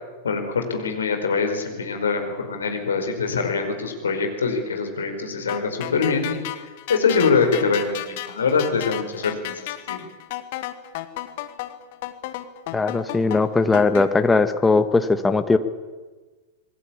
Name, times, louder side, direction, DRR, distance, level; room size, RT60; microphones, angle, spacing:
voice 1, 0.2-6.4 6.9-9.5 9.9-10.0, left 5 dB, 70° left, 5 dB, 4.8 m, -23 dB
sound 1, 5.5-14.1, left 15 dB, 50° left, 1.9 m, -33 dB
voice 2, 12.7-15.6, left 3 dB, 10° left, 9 dB, 1.7 m, -19 dB
27.5 x 20.5 x 8.6 m, 1.3 s
figure-of-eight pair, 90°, 0 cm